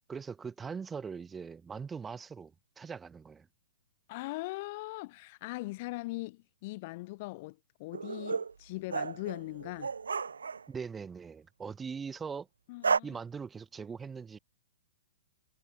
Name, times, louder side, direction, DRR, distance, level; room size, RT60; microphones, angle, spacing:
voice 1, 0.1-3.5 10.7-12.5 13.0-14.4, right 5 dB, 15° right, 6.4 m, -41 dB
voice 2, 4.1-9.9 12.7-13.2, left 22 dB, 45° left, 2.2 m, -40 dB
sound 1, 7.9-8.5 8.9-10.6 12.8-13.0, right 5 dB, 80° right, 1.2 m, -32 dB
hypercardioid pair, 120°, 0 cm